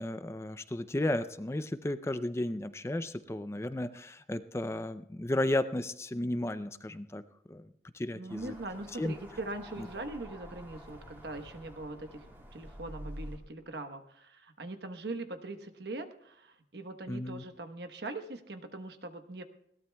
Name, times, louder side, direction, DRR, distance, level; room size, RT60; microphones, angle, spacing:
voice 1, 0.0-7.2 7.5-8.5 9.0-9.1 9.8-9.9 17.1-17.4, left 1 dB, 15° left, 12 dB, 0.4 m, -34 dB
voice 2, 8.1-19.4, right 2 dB, 70° right, 8 dB, 1.1 m, -41 dB
sound 1, 8.3-13.4, equal, 15° right, 2.7 m, -48 dB
21.0 x 17.5 x 2.3 m, 0.75 s
head